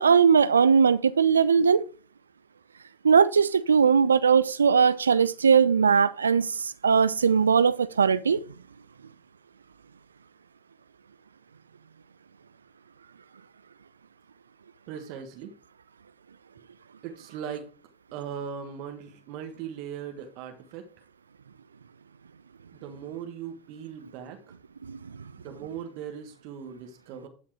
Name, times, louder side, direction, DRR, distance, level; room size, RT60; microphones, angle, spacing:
voice 1, 0.0-1.8 3.0-8.4 24.8-25.0, right 6 dB, 85° right, 0.3 m, -20 dB
voice 2, 14.9-15.5 17.0-17.7 18.1-21.0 22.7-24.6 25.4-27.3, right 8 dB, 60° right, 1.4 m, -39 dB
12.0 x 4.2 x 4.8 m
hypercardioid pair, 80°, 0 cm